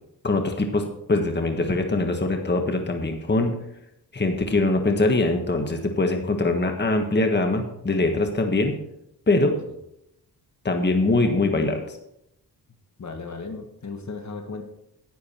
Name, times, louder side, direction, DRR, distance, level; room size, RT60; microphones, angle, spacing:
voice 1, 0.2-3.5 4.1-8.8 9.3-9.5 10.6-12.0, left 2 dB, 25° left, 4 dB, 1.5 m, -23 dB
voice 2, 13.0-14.6, left 4 dB, 45° left, 5 dB, 1.6 m, -35 dB
10.5 x 9.4 x 4.5 m, 0.80 s
wide cardioid pair, 95°, 39 cm